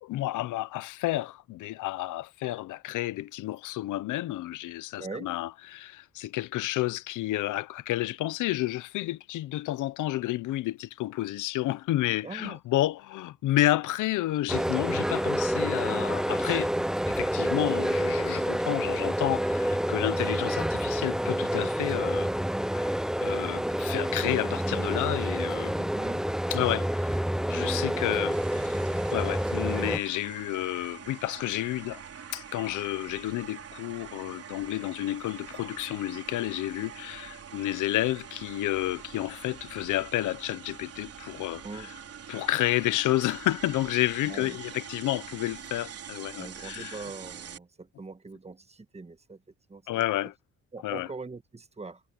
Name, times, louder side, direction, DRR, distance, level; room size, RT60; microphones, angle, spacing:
voice 1, 0.0-16.7 17.0-22.3 22.7-25.9 26.5-28.4 28.7-28.8 29.1-32.0 32.3-41.9 42.3-47.0 49.9-50.3 50.8-51.1, left 16 dB, 85° left, 0.9 m, -30 dB
voice 2, 5.0-5.3 12.2-12.6 25.9-26.3 27.9-28.2 41.6-41.9 44.2-44.6 46.4-49.4 49.7-50.0 50.7-52.0, right 3 dB, 20° right, 1.4 m, -42 dB
sound 1, 14.5-30.0, equal, ahead, 0.7 m, -28 dB
sound 2, 28.3-47.6, right 8 dB, 50° right, 3.9 m, -45 dB
cardioid pair, 90°, 30 cm